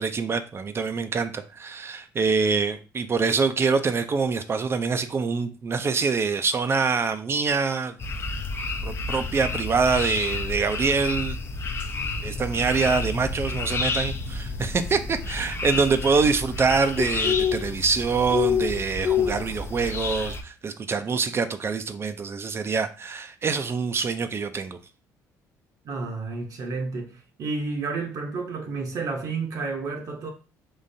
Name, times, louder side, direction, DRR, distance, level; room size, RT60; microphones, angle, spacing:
voice 1, 0.0-8.0 8.8-11.4 12.2-24.8, right 5 dB, 35° right, 0.4 m, -25 dB
sound 1, 8.0-20.4, left 5 dB, 35° left, 0.5 m, -29 dB
voice 2, 25.8-30.3, right 4 dB, 55° right, 0.8 m, -31 dB
3.7 x 3.1 x 2.6 m
supercardioid pair, 80°, 7 cm